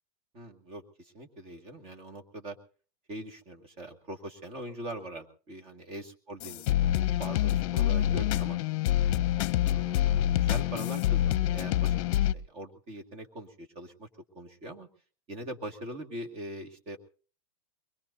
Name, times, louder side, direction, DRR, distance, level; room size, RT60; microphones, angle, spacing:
voice 1, 0.3-2.6 3.1-8.6 9.2-9.3 9.6-14.1 14.3-14.9 15.3-17.0, right 1 dB, 30° right, 4 dB, 2.2 m, -42 dB
sound 1, 6.4-12.3, left 13 dB, 55° left, 0.7 m, -26 dB
23.5 x 21.5 x 2.8 m, 0.40 s
supercardioid pair, 155°, 19 cm